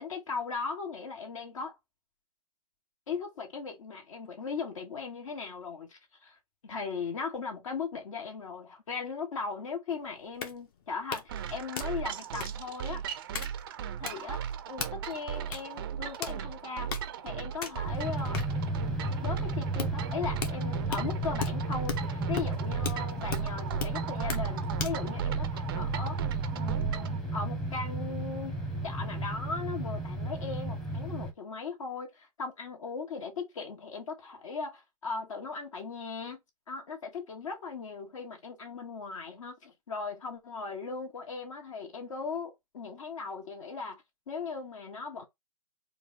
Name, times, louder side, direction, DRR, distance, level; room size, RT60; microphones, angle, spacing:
voice 1, 0.0-1.8 3.1-6.4 6.6-13.0 14.0-16.9 17.2-18.4 19.2-26.2 26.5-28.6 28.8-36.4 36.7-45.3, left 5 dB, 55° left, 1.9 m, -38 dB
sound 1, 9.9-25.1, left 7 dB, 35° left, 1.1 m, -40 dB
sound 2, 11.3-27.2, right 9 dB, 35° right, 0.5 m, -36 dB
sound 3, 17.9-31.3, right 1 dB, 5° left, 1.0 m, -34 dB
4.5 x 2.6 x 4.0 m
hypercardioid pair, 145°, 20 cm